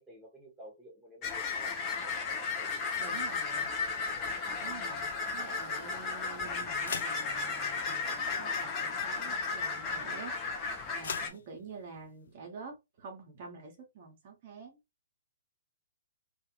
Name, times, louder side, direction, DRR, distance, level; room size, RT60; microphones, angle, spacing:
voice 1, 0.0-2.8 3.9-4.2 5.1-5.5, equal, 5° right, 1.2 m, -53 dB
sound 1, 1.2-11.3, left 4 dB, 25° left, 0.7 m, -34 dB
voice 2, 3.0-3.7 4.6-14.8, right 4 dB, 45° right, 1.0 m, -48 dB
sound 2, 4.6-12.3, left 6 dB, 65° left, 0.4 m, -47 dB
2.6 x 2.5 x 3.0 m
figure-of-eight pair, 125°, 0 cm